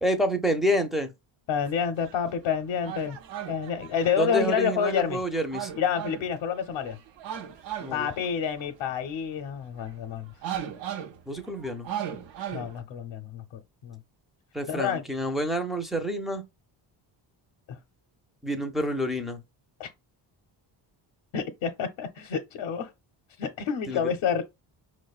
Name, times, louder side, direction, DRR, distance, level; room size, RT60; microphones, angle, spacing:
voice 1, 0.0-1.1 4.2-5.7 7.8-8.1 11.3-11.9 14.5-16.4 18.4-19.4 23.9-24.1, equal, ahead, 0.5 m, -28 dB
voice 2, 1.5-3.2 3.5-5.2 5.8-7.0 7.9-10.3 12.5-13.4 13.8-14.0 14.7-15.0 17.7-17.8 19.8-19.9 21.3-22.9 23.4-24.4, left 7 dB, 65° left, 0.6 m, -28 dB
sound 1, 1.6-2.2 2.5-9.1 9.6-10.1 10.4-12.8, right 10 dB, 65° right, 0.7 m, -37 dB
4.8 x 2.1 x 2.3 m
cardioid pair, 105°, 47 cm